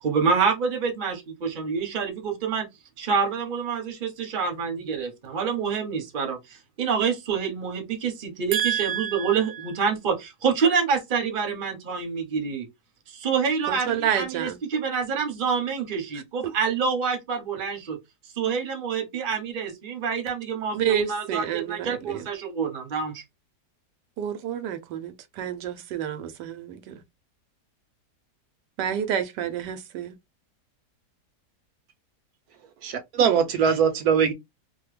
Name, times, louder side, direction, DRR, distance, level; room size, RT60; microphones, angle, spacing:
voice 1, 0.0-2.7 3.0-6.4 6.8-12.6 13.1-18.0 18.4-23.2, right 6 dB, 40° right, 0.8 m, -27 dB
voice 2, 8.5-9.7 13.7-14.6 20.7-22.3 24.2-27.0 28.8-30.2, right 9 dB, 90° right, 1.2 m, -29 dB
voice 3, 32.8-34.3, right 7 dB, 75° right, 1.0 m, -21 dB
2.9 x 2.1 x 3.2 m
omnidirectional pair, 1.8 m